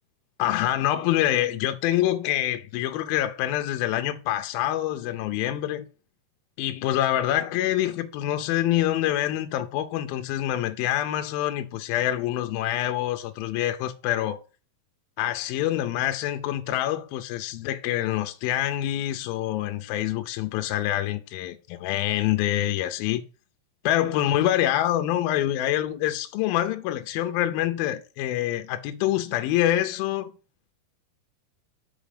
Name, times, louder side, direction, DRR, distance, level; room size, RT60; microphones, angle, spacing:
voice 1, 0.4-5.8 6.6-14.4 15.2-23.2 23.9-30.3, left 13 dB, 80° left, 2.3 m, -26 dB
6.2 x 5.5 x 5.0 m
omnidirectional pair, 4.7 m